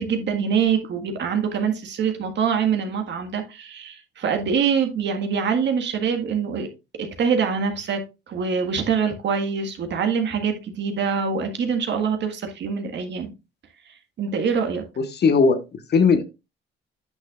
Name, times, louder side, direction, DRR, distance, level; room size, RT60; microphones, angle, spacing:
voice 1, 0.0-6.7 7.0-13.3 14.2-14.9, right 6 dB, 65° right, 1.7 m, -24 dB
voice 2, 15.0-16.2, left 5 dB, 55° left, 1.3 m, -19 dB
9.8 x 6.2 x 2.4 m
cardioid pair, 90°, 20 cm